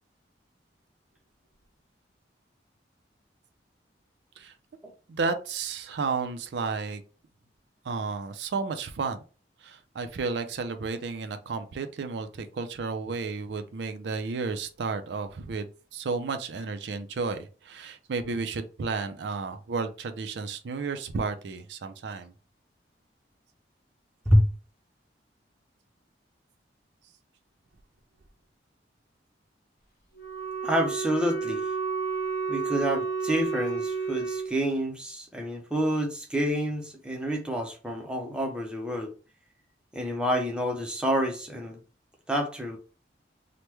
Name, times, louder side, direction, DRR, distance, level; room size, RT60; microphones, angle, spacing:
voice 1, 5.1-7.0 7.8-9.2 9.6-15.7 15.9-22.3, right 4 dB, 70° right, 0.4 m, -32 dB
Wind instrument woodwind instrument, 30.1-34.5, right 5 dB, 50° left, 1.1 m, -31 dB
voice 2, 30.6-31.7 32.5-39.1 39.9-41.8 42.3-42.8, equal, 5° right, 0.5 m, -28 dB
3.0 x 2.1 x 3.3 m
head